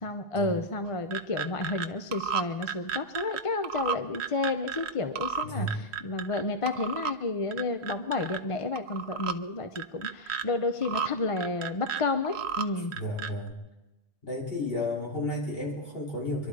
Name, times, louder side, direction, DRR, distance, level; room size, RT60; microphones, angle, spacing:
voice 1, 0.0-12.9, left 3 dB, 35° left, 8 dB, 0.8 m, -31 dB
sound 1, 0.8-1.9 2.1-4.9 5.2-6.4 6.7-7.1 7.5-8.4 8.8-9.3 9.8-10.4 10.8-11.1 11.4-12.7 12.9-13.5, right 7 dB, 80° right, 1.0 m, -33 dB
voice 2, 5.4-5.7 13.0-13.6 14.2-16.5, left 1 dB, 60° left, -3 dB, 3.7 m, -32 dB
23.5 x 12.0 x 4.8 m, 1.0 s
omnidirectional pair, 1.1 m